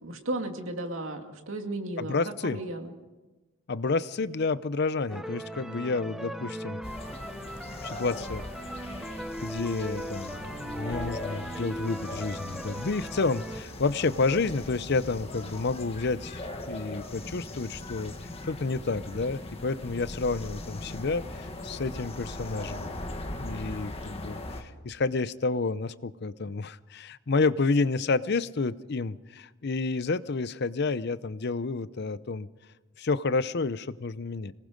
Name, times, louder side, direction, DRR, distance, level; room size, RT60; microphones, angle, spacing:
voice 1, 0.0-2.2 2.4-2.9, right 2 dB, 75° right, 4 dB, 2.4 m, -34 dB
voice 2, 2.0-2.6 3.7-6.8 7.8-9.0 9.4-18.1 18.4-22.9 23.3-32.5 33.0-34.5, left 3 dB, 55° left, 16 dB, 0.6 m, -30 dB
sound 1, 5.1-13.6, equal, ahead, 0.8 m, -38 dB
sound 2, 6.8-24.6, left 1 dB, 30° left, 1.6 m, -40 dB
26.0 x 19.0 x 5.2 m, 1.1 s
head